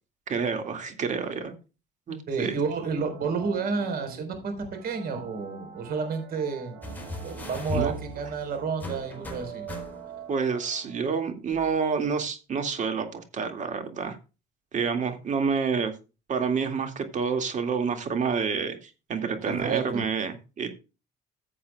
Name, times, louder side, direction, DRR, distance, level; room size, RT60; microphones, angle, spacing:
voice 1, 0.3-1.5 2.1-2.6 7.7-7.9 10.3-14.2 14.7-15.9 16.3-20.7, right 5 dB, 45° right, 6 dB, 2.2 m, -28 dB
voice 2, 2.3-4.5 4.8-6.8 7.2-9.7 19.4-20.0, right 5 dB, 60° right, 6 dB, 4.5 m, -30 dB
sound 1, 2.7-11.4, right 6 dB, 85° right, 3.3 m, -45 dB
sound 2, 6.8-10.3 11.5-11.6, left 1 dB, 10° left, 4.1 m, -37 dB
15.5 x 8.5 x 2.3 m, 0.31 s
cardioid pair, 110°, 17 cm